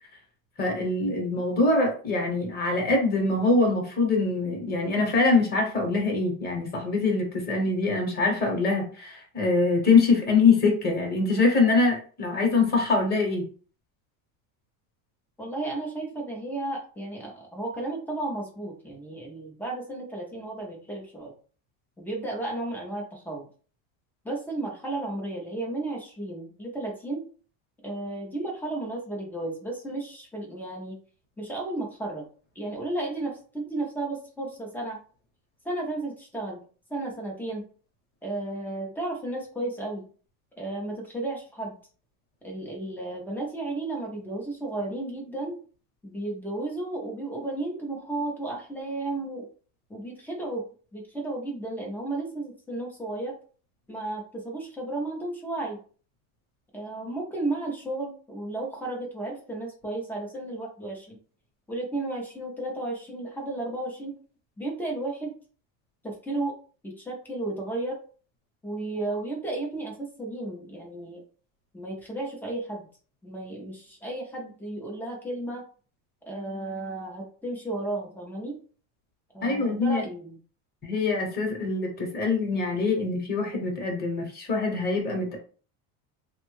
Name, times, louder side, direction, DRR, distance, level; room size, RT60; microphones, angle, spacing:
voice 1, 0.6-13.5 79.4-80.0 80.8-85.4, left 3 dB, 20° left, 1 dB, 0.8 m, -24 dB
voice 2, 15.4-21.3 22.0-23.5 24.2-27.2 27.8-31.0 31.4-32.2 32.6-35.0 35.6-36.6 36.9-37.6 38.2-40.1 40.6-41.8 42.4-45.6 46.0-49.5 49.9-50.6 50.9-53.3 53.9-55.8 56.7-61.2 61.7-64.1 64.6-65.3 66.0-66.5 66.8-68.0 68.6-71.2 71.7-72.9 73.2-75.6 76.3-78.6 79.3-80.4, right 2 dB, 5° left, -1 dB, 0.3 m, -33 dB
3.3 x 2.1 x 3.0 m, 0.40 s
cardioid pair, 165°, 44 cm